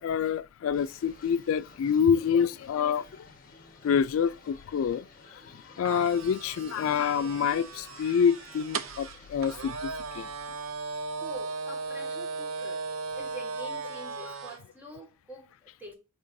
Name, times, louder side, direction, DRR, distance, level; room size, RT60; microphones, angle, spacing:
voice 1, 0.0-3.1 3.8-5.1 5.8-9.9 10.1-10.3, left 7 dB, 85° left, 0.3 m, -26 dB
sound 1, 0.7-9.6, left 4 dB, 45° left, 1.3 m, -53 dB
sound 2, 5.8-14.6, right 4 dB, 80° right, 0.5 m, -37 dB
voice 2, 11.1-12.8 13.1-16.0, right 1 dB, 10° right, 1.7 m, -46 dB
11.0 x 3.8 x 2.6 m
head